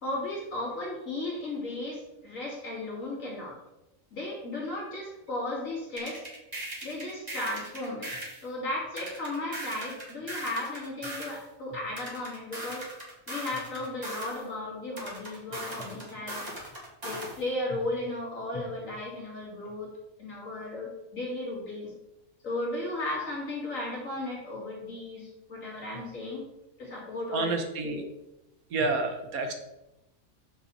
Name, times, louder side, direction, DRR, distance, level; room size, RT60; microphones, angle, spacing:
voice 1, 0.0-3.6 4.1-6.2 6.8-8.1 8.4-12.9 13.3-16.5 17.0-19.9 20.2-21.9 22.4-26.4 26.8-27.5 27.8-28.0, left 2 dB, 65° left, -4 dB, 3.0 m, -35 dB
sound 1, 6.0-8.4 9.0-11.4 12.0-14.4 15.0-17.4, right 1 dB, 30° right, 2.5 m, -39 dB
voice 2, 27.3-28.0 28.7-29.5, right 3 dB, 80° right, 5 dB, 1.5 m, -29 dB
7.2 x 6.5 x 4.2 m, 0.95 s
omnidirectional pair, 1.5 m